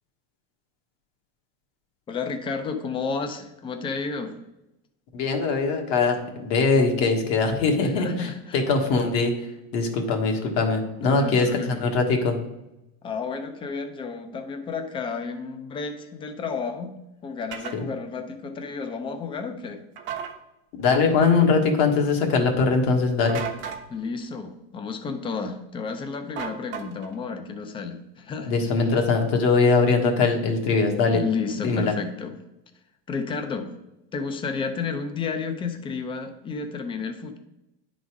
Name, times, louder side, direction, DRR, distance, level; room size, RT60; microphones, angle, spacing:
voice 1, 2.1-4.4 7.8-8.6 11.0-11.8 13.0-19.8 23.9-28.5 31.1-32.4 33.1-33.7 34.1-37.4, left 5 dB, 15° left, 6 dB, 0.7 m, -31 dB
voice 2, 5.1-8.3 8.5-9.3 9.7-12.4 17.7-17.8 20.8-23.4 28.5-31.2 31.6-31.9, left 4 dB, 50° left, 3 dB, 1.5 m, -21 dB
sound 1, 17.5-17.8 20.0-20.3 23.3-23.8 26.4-27.1, right 8 dB, 40° right, 1.0 m, -34 dB
9.9 x 4.1 x 4.8 m, 0.91 s
supercardioid pair, 150°, 30 cm